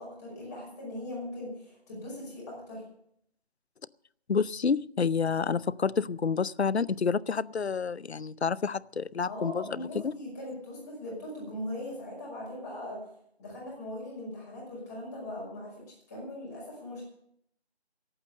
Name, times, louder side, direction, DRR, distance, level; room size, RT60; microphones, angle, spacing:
voice 1, 0.0-2.8 9.3-13.0 13.4-17.0, left 1 dB, 15° left, 5.5 m, -40 dB
voice 2, 4.3-10.1, left 5 dB, 80° left, 0.6 m, -29 dB
18.5 x 8.8 x 6.6 m
figure-of-eight pair, 165°, 32 cm